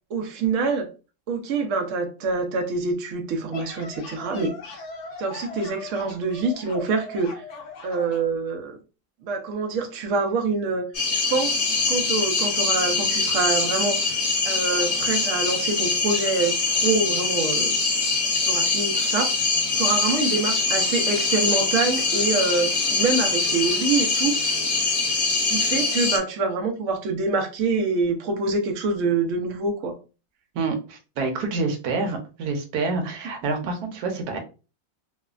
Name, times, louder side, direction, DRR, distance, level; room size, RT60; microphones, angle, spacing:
voice 1, 0.1-0.9 1.3-4.5 5.2-7.4 7.8-8.8 9.2-10.9 11.1-14.2 14.4-17.7 18.4-19.3 19.8-24.6 25.4-29.9, right 3 dB, 90° right, 4 dB, 0.6 m, -25 dB
sound 1, 3.3-8.3, left 3 dB, 70° left, 0.6 m, -39 dB
sound 2, 10.9-26.2, left 3 dB, 50° left, 1.0 m, -23 dB
voice 2, 30.5-34.4, right 3 dB, 65° right, 4 dB, 1.0 m, -27 dB
3.1 x 2.1 x 2.3 m, 0.32 s
omnidirectional pair, 2.0 m